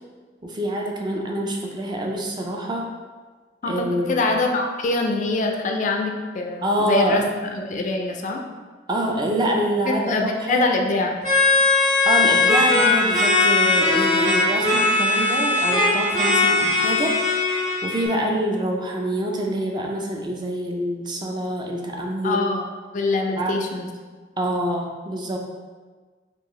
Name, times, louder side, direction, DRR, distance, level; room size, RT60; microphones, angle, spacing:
voice 1, 0.4-2.9 3.6-4.2 6.6-7.3 8.9-10.7 12.1-17.5 17.8-22.5 23.4-23.6 24.4-25.4, right 1 dB, 25° right, 0 dB, 0.4 m, -26 dB
voice 2, 3.6-8.4 9.8-11.2 22.2-22.7 22.9-23.9, left 2 dB, 45° left, 3 dB, 0.3 m, -24 dB
sound 1, 11.2-18.1, left 3 dB, 50° right, 1.4 m, -19 dB
4.4 x 2.4 x 3.0 m, 1.4 s
head